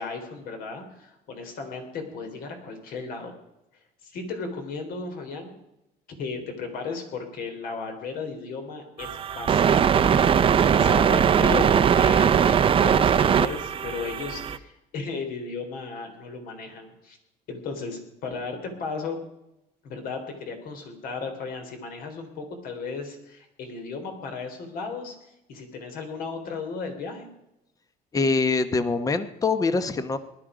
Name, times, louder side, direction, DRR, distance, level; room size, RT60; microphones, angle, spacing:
voice 1, 0.0-3.3 4.0-5.5 6.2-9.1 9.3-11.7 12.0-17.2 17.5-19.2 19.8-25.2 25.5-27.3, left 4 dB, 65° left, 5 dB, 3.6 m, -35 dB
sound 1, 9.0-14.6, right 8 dB, 35° right, 0.7 m, -20 dB
voice 2, 28.1-30.2, left 4 dB, 20° left, 11 dB, 1.0 m, -24 dB
19.0 x 12.0 x 5.0 m, 0.88 s
cardioid pair, 135°, 16 cm